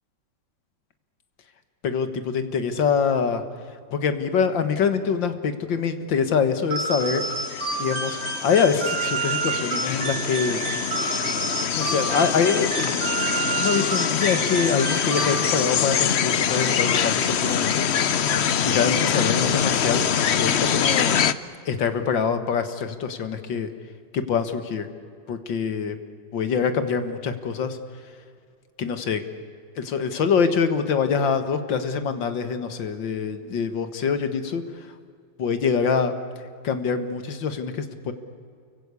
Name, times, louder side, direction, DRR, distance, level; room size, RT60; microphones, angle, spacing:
voice 1, 1.8-3.4 3.9-7.2 7.6-10.6 11.8-12.9 13.6-17.9 18.2-20.1 20.4-21.2 21.7-23.7 24.1-24.9 25.3-26.0 26.3-27.8 28.8-29.2 29.8-34.6 35.4-36.1 36.6-38.1, left 6 dB, 80° left, 9 dB, 2.3 m, -24 dB
sound 1, 6.7-15.7, right 4 dB, 60° right, 3.1 m, -29 dB
sound 2, 6.9-21.3, left 8 dB, 55° left, 0.7 m, -24 dB
29.5 x 23.5 x 8.4 m, 2.2 s
omnidirectional pair, 2.0 m